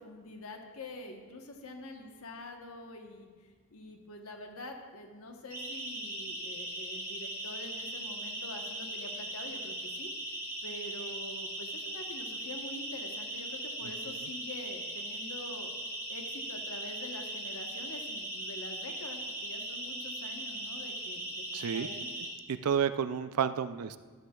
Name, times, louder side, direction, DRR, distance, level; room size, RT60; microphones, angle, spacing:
voice 1, 0.0-3.3 3.7-10.1 10.6-15.7 16.1-21.4 21.7-22.1, left 2 dB, 70° left, 3 dB, 1.1 m, -46 dB
Siren, 5.5-22.3, right 1 dB, 10° right, 3.7 m, -39 dB
voice 2, 21.5-21.9 22.5-24.0, right 7 dB, 85° right, 12 dB, 0.4 m, -30 dB
13.0 x 13.0 x 2.4 m, 1.4 s
head